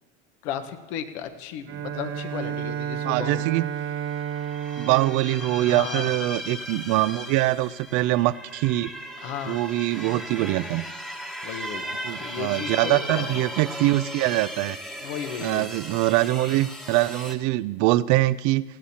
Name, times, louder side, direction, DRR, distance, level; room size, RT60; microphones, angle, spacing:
voice 1, 0.4-3.4 5.6-6.1 9.2-9.6 11.4-11.8 12.2-13.4 15.0-15.7, left 8 dB, 75° left, 8 dB, 1.2 m, -34 dB
Bowed string instrument, 1.7-6.7, right 9 dB, 40° right, 0.9 m, -32 dB
voice 2, 3.0-3.7 4.8-8.9 9.5-10.9 12.0-14.8 15.4-18.6, right 17 dB, 60° right, 17 dB, 0.5 m, -23 dB
sound 1, 3.5-3.7 4.0-17.3, equal, ahead, 1.2 m, -37 dB
19.0 x 15.5 x 2.9 m, 1.2 s
supercardioid pair, 100°, 33 cm